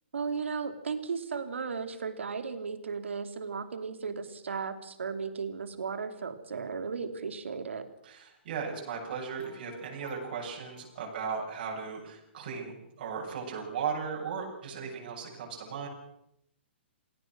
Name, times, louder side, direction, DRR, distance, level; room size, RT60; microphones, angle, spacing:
voice 1, 0.1-7.9, right 5 dB, 90° right, 8 dB, 3.1 m, -35 dB
voice 2, 8.0-15.9, right 6 dB, 50° right, -2 dB, 7.8 m, -37 dB
sound 1, 9.1-11.6, left 7 dB, 85° left, 6.0 m, -55 dB
27.5 x 18.0 x 6.2 m, 0.77 s
hypercardioid pair, 155°, 6 cm